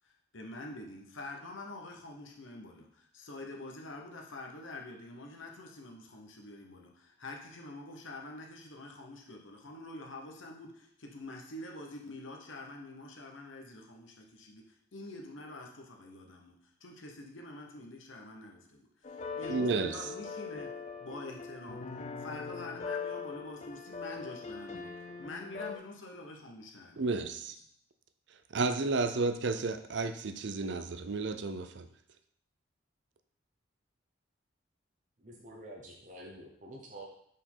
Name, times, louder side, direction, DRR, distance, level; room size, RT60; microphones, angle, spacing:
voice 1, 0.3-20.7 21.0-21.8 22.2-27.5, left 2 dB, 80° left, 1 dB, 1.1 m, -46 dB
sound 1, 19.0-25.8, left 5 dB, 35° left, 0.4 m, -41 dB
voice 2, 19.5-20.0 27.0-27.5 28.5-31.9, right 3 dB, 60° right, 10 dB, 0.5 m, -32 dB
voice 3, 35.2-37.0, right 1 dB, 40° right, -2 dB, 0.9 m, -48 dB
5.2 x 4.4 x 5.6 m, 0.69 s
head